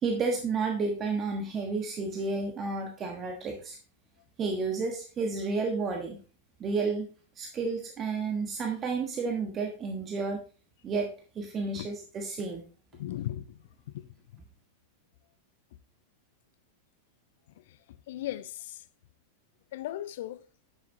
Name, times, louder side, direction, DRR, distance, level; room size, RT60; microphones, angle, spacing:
voice 1, 0.0-3.8 4.4-6.2 6.6-7.1 7.4-10.4 10.8-11.1 11.3-12.6, right 4 dB, 25° right, 1.3 m, -31 dB
voice 2, 12.9-13.6 13.9-14.0 18.1-18.8 19.7-20.4, left 13 dB, 55° left, 0.5 m, -36 dB
9.7 x 6.9 x 2.8 m
figure-of-eight pair, 90°, 0 cm